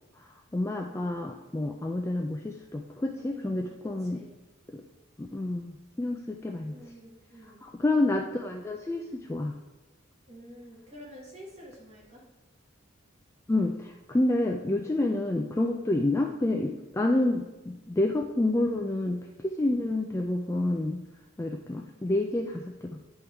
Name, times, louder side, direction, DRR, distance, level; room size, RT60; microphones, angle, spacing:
voice 1, 0.2-4.2 4.7-4.8 5.2-6.7 7.6-9.5 13.5-21.0 21.4-23.0, left 2 dB, 15° left, 3 dB, 0.3 m, -29 dB
voice 2, 3.3-4.4 6.6-7.7 10.3-12.2, equal, 30° right, -5 dB, 1.8 m, -49 dB
10.0 x 3.6 x 4.5 m, 1.1 s
head